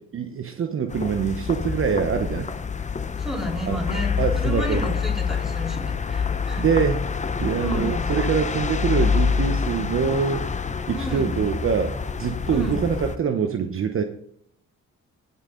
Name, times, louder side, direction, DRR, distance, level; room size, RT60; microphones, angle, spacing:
voice 1, 0.1-2.5 3.7-4.9 6.6-7.0 7.4-10.5 10.9-14.0, right 6 dB, 45° right, 6 dB, 0.9 m, -24 dB
sound 1, 0.9-13.2, left 5 dB, 25° left, 0.7 m, -26 dB
voice 2, 3.2-6.7 7.5-8.1 10.9-11.3 12.5-12.8, equal, ahead, -2 dB, 3.7 m, -32 dB
16.5 x 5.6 x 3.9 m, 0.70 s
cardioid pair, 90°, 30 cm